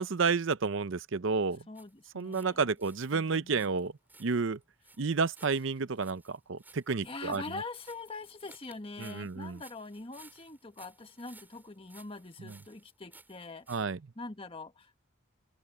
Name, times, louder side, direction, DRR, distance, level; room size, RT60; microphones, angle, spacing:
voice 1, 0.0-1.6 2.1-3.9 4.2-4.6 5.0-7.4 9.0-9.6 13.7-14.0, right 4 dB, 60° right, 0.6 m, -30 dB
voice 2, 1.7-2.7 7.0-13.7 14.1-14.9, left 3 dB, 25° left, 1.5 m, -44 dB
sound 1, 1.7-2.5 2.8-13.9, right 3 dB, 10° right, 6.3 m, -59 dB
open air
head